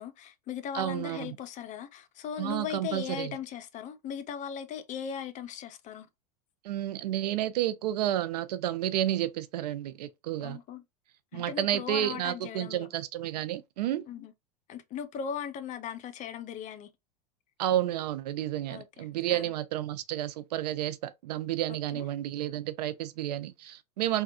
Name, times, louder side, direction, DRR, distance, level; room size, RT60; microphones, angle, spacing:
voice 1, 0.0-6.1 10.4-10.8 11.3-12.9 14.1-14.3 14.7-16.9 18.7-19.6 21.7-22.1, left 8 dB, 35° left, 0.6 m, -38 dB
voice 2, 0.7-1.3 2.4-3.3 6.6-10.6 11.3-14.0 17.6-24.2, right 12 dB, 70° right, 0.5 m, -31 dB
3.4 x 2.3 x 2.6 m
hypercardioid pair, 100°, 21 cm